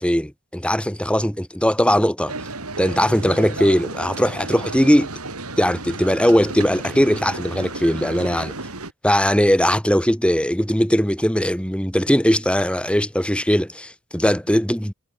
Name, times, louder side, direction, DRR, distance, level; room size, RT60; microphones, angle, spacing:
voice 1, 0.0-2.3 2.8-5.1 5.6-8.6 9.0-14.9, equal, 5° left, 3.6 m, -19 dB
sound 1, 2.3-8.9, right 3 dB, 90° right, 7.4 m, -33 dB
head